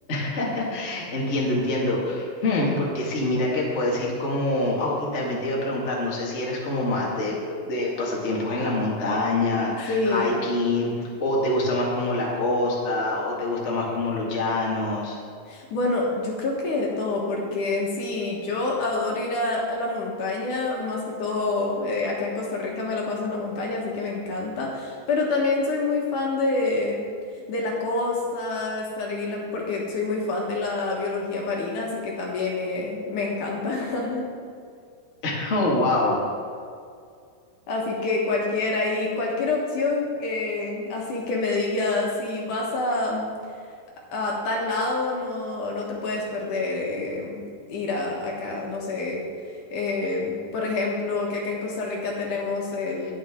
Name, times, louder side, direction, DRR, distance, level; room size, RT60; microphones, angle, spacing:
voice 1, 0.1-15.2 35.2-36.2, left 2 dB, 35° left, -4 dB, 1.1 m, -25 dB
voice 2, 9.9-10.4 15.5-27.1 27.5-34.2 37.7-43.3 44.1-49.2 49.7-53.1, left 3 dB, 60° left, -2 dB, 2.6 m, -27 dB
18.5 x 6.4 x 3.7 m, 2.2 s
omnidirectional pair, 4.4 m